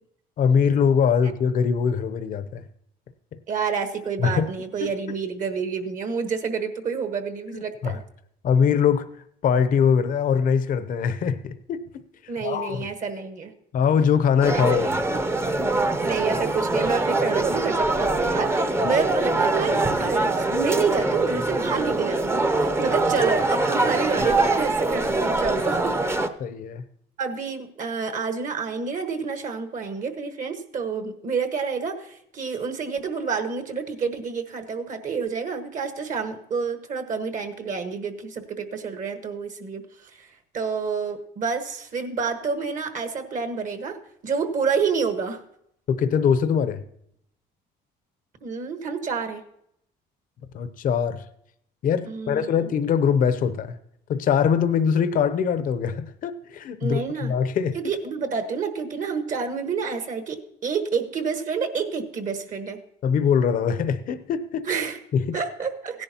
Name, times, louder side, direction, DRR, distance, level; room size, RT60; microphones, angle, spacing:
voice 1, 0.4-2.6 4.2-4.5 4.8-4.9 7.5-8.0 8.4-9.1 9.4-11.8 12.4-12.9 13.7-14.9 26.4-26.8 45.9-46.8 50.5-51.2 51.8-53.8 54.1-57.8 63.0-64.7 65.1-65.4, left 7 dB, 55° left, 0.7 m, -22 dB
voice 2, 3.5-8.0 12.3-13.5 14.5-14.7 16.0-25.9 27.2-45.4 48.4-49.4 52.1-52.7 56.8-57.3 57.7-62.8 64.6-65.0 65.3-66.0, right 5 dB, 50° right, 1.4 m, -28 dB
sound 1, 14.4-26.3, right 2 dB, 15° right, 0.7 m, -23 dB
16.5 x 10.5 x 2.9 m
cardioid pair, 110°, 17 cm